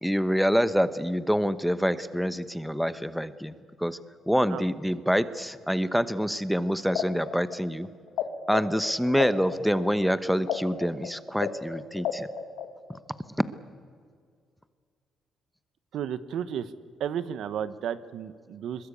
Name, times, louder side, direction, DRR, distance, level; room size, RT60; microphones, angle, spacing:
voice 1, 0.0-3.5 3.8-4.0 4.3-7.9 8.5-12.3, equal, ahead, 13 dB, 1.0 m, -26 dB
sound 1, 6.9-8.2 8.5-13.0, left 10 dB, 90° left, 1.8 m, -32 dB
voice 2, 15.9-16.7 17.0-18.9, right 9 dB, 75° right, 14 dB, 1.0 m, -33 dB
22.0 x 21.5 x 8.6 m, 2.1 s
cardioid pair, 90°, 0 cm